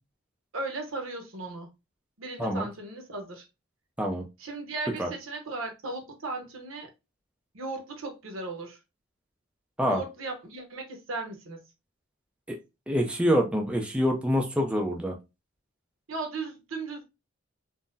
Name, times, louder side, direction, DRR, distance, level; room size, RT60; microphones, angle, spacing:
voice 1, 0.5-1.7 2.2-3.5 4.4-6.9 7.5-8.8 9.8-11.6 16.1-17.0, right 3 dB, 80° right, 0.9 m, -36 dB
voice 2, 12.9-15.1, equal, 5° right, 0.4 m, -26 dB
3.7 x 2.0 x 2.6 m
head